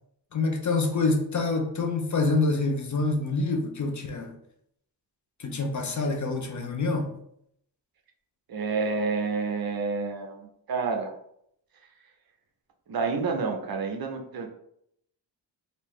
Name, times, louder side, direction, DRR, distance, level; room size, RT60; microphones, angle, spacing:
voice 1, 0.3-4.4 5.4-7.1, left 3 dB, 40° left, 4 dB, 0.6 m, -26 dB
voice 2, 8.5-11.1 12.9-14.5, right 4 dB, 50° right, 3 dB, 0.7 m, -29 dB
3.5 x 2.7 x 3.1 m, 0.73 s
cardioid pair, 100°, 46 cm